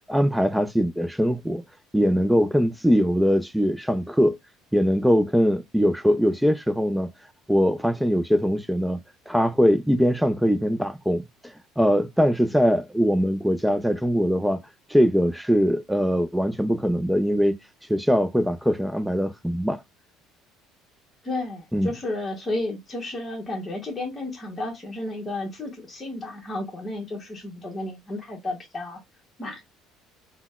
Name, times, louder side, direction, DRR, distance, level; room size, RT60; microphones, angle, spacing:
voice 1, 0.1-1.6 1.9-4.4 4.7-7.1 7.5-9.0 9.3-11.2 11.8-14.6 14.9-17.6 17.9-19.8 21.7-21.9, equal, ahead, 0.3 m, -21 dB
voice 2, 21.2-29.0 29.4-29.6, left 2 dB, 20° left, 0.9 m, -32 dB
3.8 x 2.0 x 2.3 m
cardioid pair, 135°, 0 cm